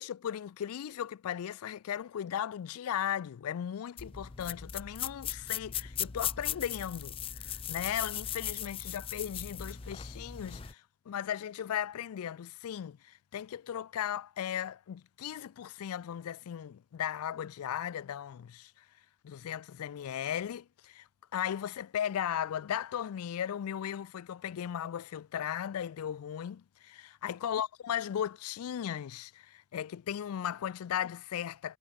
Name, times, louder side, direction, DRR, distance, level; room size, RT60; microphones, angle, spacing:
voice 1, 0.0-18.8 19.2-21.1 21.3-31.8, left 9 dB, 80° left, 0.3 m, -37 dB
sound 1, 4.0-10.7, left 9 dB, 25° left, 0.5 m, -38 dB
head